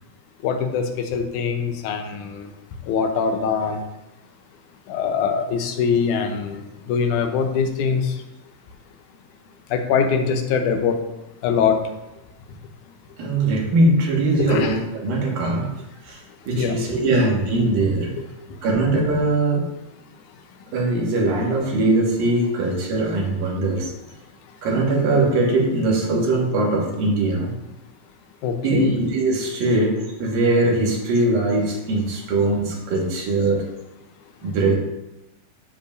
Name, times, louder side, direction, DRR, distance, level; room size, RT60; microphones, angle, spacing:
voice 1, 0.4-0.8 1.1-2.5 2.9-3.8 4.9-6.6 6.9-8.1 9.7-11.0 11.4-11.8 14.4-14.8 16.6-16.7 28.4-28.9, left 6 dB, 75° left, 4 dB, 2.0 m, -22 dB
voice 2, 13.2-14.8 15.0-15.7 16.1-16.2 16.5-18.1 18.6-19.6 20.7-23.9 24.6-27.5 28.6-33.6 34.4-34.8, right 2 dB, 75° right, -3 dB, 3.4 m, -21 dB
10.0 x 7.5 x 2.6 m, 0.94 s
omnidirectional pair, 4.0 m